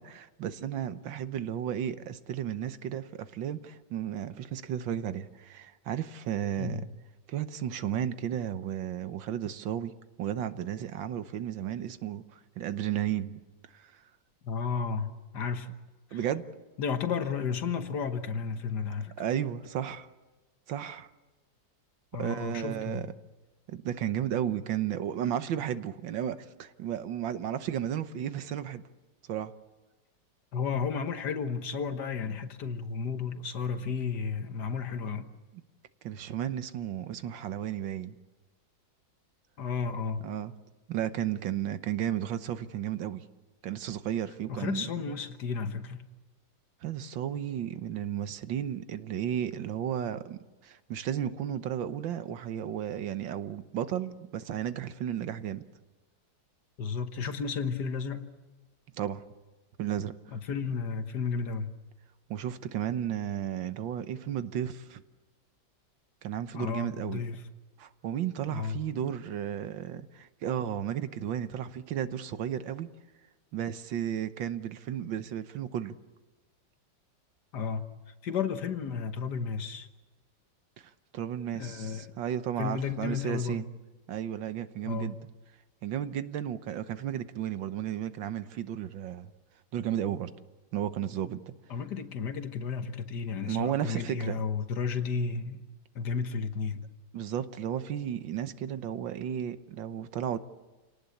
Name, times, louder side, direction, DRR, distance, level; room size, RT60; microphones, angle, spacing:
voice 1, 0.0-6.8 7.3-9.9 10.2-13.4 13.7-13.9 16.1-16.4 19.2-20.1 20.7-21.1 22.2-23.1 23.7-28.8 29.3-29.5 36.0-38.2 40.2-40.5 40.9-43.2 43.6-45.2 46.8-55.6 59.0-59.2 59.8-60.1 62.3-65.0 66.2-67.2 67.8-72.9 73.5-76.0 81.1-83.7 84.1-85.2 85.8-89.3 89.7-90.3 90.7-91.5 93.5-94.4 97.1-100.4, right 10 dB, 80° right, 12 dB, 1.7 m, -33 dB
voice 2, 14.4-15.7 16.1-16.2 16.8-19.1 22.1-23.0 30.5-35.3 39.6-40.2 44.5-46.1 56.8-58.3 60.3-61.7 66.5-67.4 68.5-68.8 77.5-77.9 78.2-79.9 81.5-82.1 82.6-83.6 84.8-85.2 91.7-95.6 96.0-96.8, left 5 dB, 65° left, 9 dB, 1.8 m, -33 dB
28.0 x 18.5 x 8.4 m, 1.2 s
omnidirectional pair, 2.0 m